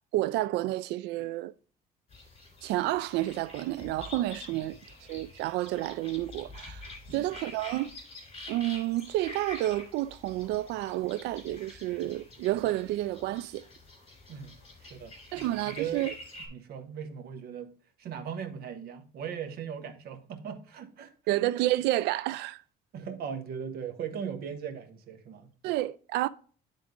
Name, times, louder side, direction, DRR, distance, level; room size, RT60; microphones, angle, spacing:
voice 1, 0.1-1.5 2.6-4.8 5.1-7.9 8.5-13.6 15.3-16.1 21.3-22.6 25.6-26.3, right 16 dB, 85° right, 0.4 m, -30 dB
sound 1, 2.1-16.5, left 2 dB, 35° left, 3.6 m, -47 dB
voice 2, 14.3-16.1 16.5-21.4 22.9-25.5, right 7 dB, 65° right, 1.3 m, -39 dB
10.5 x 3.7 x 3.7 m
cardioid pair, 110°, 17 cm